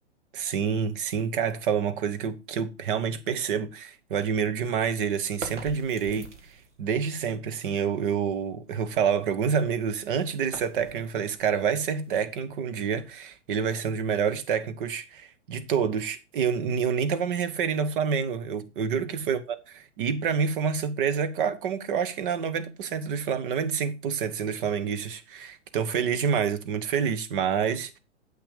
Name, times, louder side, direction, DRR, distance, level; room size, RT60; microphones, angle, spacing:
voice 1, 0.3-6.3 6.8-19.4 20.0-28.0, right 7 dB, 45° right, 1.2 m, -27 dB
sound 1, 5.2-6.8 9.5-12.5, right 4 dB, 75° right, 1.9 m, -44 dB
7.7 x 6.1 x 5.1 m
figure-of-eight pair, 110°, 35 cm